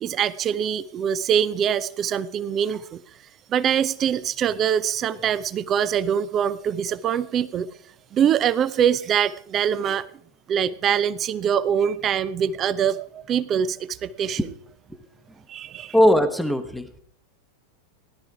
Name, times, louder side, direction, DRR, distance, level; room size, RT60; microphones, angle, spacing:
voice 1, 0.0-3.0 3.5-7.7 8.1-10.0 10.5-14.4 15.5-15.9, right 8 dB, 30° right, 18 dB, 0.6 m, -23 dB
voice 2, 15.9-16.9, equal, ahead, 10 dB, 1.1 m, -19 dB
17.5 x 11.5 x 4.8 m, 0.63 s
figure-of-eight pair, 90°, 0 cm